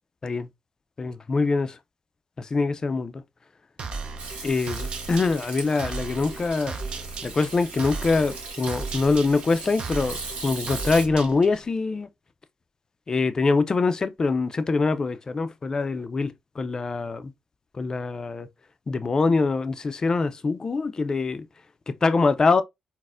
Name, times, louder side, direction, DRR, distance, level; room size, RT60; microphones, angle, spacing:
voice 1, 1.0-1.8 2.4-3.2 4.4-6.8 7.2-10.2 10.4-12.1 13.1-17.3 17.7-18.5 18.9-21.5 21.9-22.6, left 4 dB, 35° left, 0.4 m, -24 dB
sound 1, 3.8-11.7, right 4 dB, 55° right, 0.6 m, -36 dB
Hands / Sink (filling or washing), 4.2-11.0, right 4 dB, 75° right, 1.2 m, -39 dB
4.0 x 2.1 x 2.4 m
cardioid pair, 80°, 2 cm